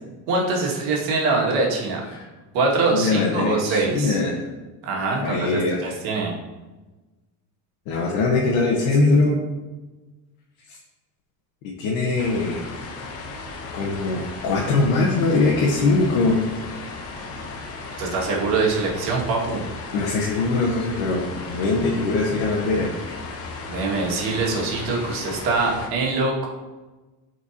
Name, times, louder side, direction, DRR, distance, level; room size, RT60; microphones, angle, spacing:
voice 1, 0.3-2.0 2.5-4.2 4.8-6.3 8.8-9.5 12.0-12.3 18.0-19.6 23.7-26.5, right 3 dB, 65° right, -2 dB, 2.1 m, -24 dB
voice 2, 2.9-4.4 5.2-6.0 7.9-9.4 11.8-12.6 13.7-16.4 19.9-22.9, left 3 dB, 75° left, -2 dB, 1.4 m, -22 dB
sound 1, 12.2-25.9, left 3 dB, 35° left, 0.9 m, -35 dB
13.0 x 4.7 x 2.9 m, 1.2 s
cardioid pair, 180°, 40 cm